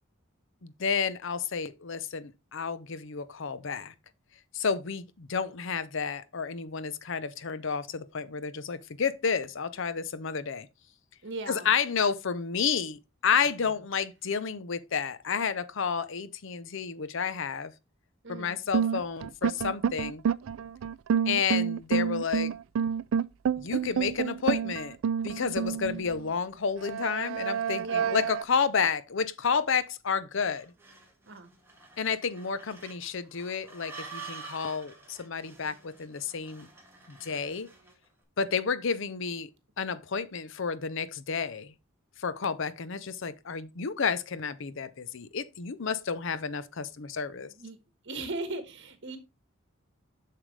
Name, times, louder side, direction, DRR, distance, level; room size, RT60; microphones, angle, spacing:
voice 1, 0.6-3.9 4.5-10.7 11.5-17.7 18.3-20.2 21.3-22.5 23.6-25.0 25.2-30.7 32.0-36.7 37.1-37.7 38.4-39.5 39.8-41.7 42.2-47.5, left 6 dB, 65° left, 0.7 m, -31 dB
voice 2, 11.2-11.7 18.2-18.6 27.8-28.2 31.3-31.5 47.5-47.8 48.0-49.2, right 2 dB, 60° right, 1.6 m, -38 dB
sound 1, 18.7-26.3 26.8-28.4, right 7 dB, 75° right, 0.4 m, -28 dB
sound 2, 30.6-38.0, right 5 dB, 10° right, 2.0 m, -48 dB
7.3 x 6.7 x 3.3 m
head